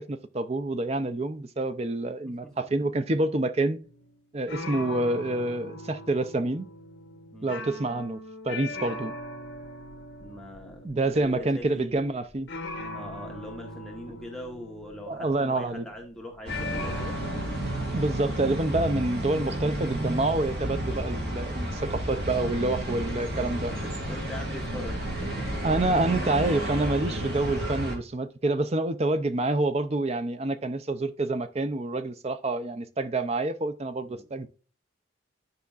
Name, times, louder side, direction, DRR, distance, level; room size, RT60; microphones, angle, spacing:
voice 1, 0.0-3.8 4.3-6.7 7.4-8.2 8.4-9.1 10.8-12.5 15.1-15.8 17.9-23.7 25.6-34.5, right 2 dB, 30° right, 0.5 m, -27 dB
sound 1, 3.8-4.2 4.5-16.1 16.5-18.6, left 1 dB, 65° left, 1.5 m, -40 dB
voice 2, 10.2-12.1 12.9-17.2 21.7-21.9 22.8-22.9 23.8-25.6 34.0-34.2, left 1 dB, 5° left, 1.2 m, -42 dB
sound 2, 16.5-28.0, right 1 dB, 55° right, 2.6 m, -31 dB
9.4 x 5.7 x 2.4 m
head